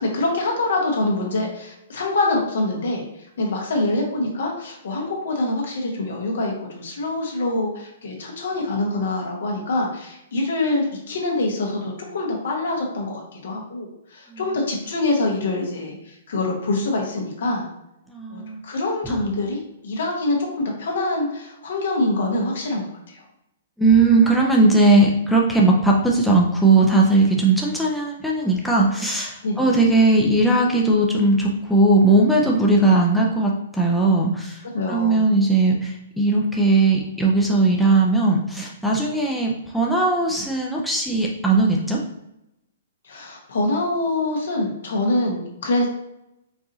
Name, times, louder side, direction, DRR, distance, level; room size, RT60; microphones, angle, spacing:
voice 1, 0.0-3.0 3.4-17.6 18.3-23.2 29.4-29.8 32.7-32.9 34.7-35.2 43.0-45.9, left 2 dB, 75° left, 0 dB, 1.2 m, -25 dB
voice 2, 18.1-18.6 19.0-19.3 23.8-34.6 34.9-42.0, right 2 dB, ahead, -3 dB, 0.5 m, -18 dB
4.7 x 2.6 x 2.8 m, 0.84 s
hypercardioid pair, 140°, 0 cm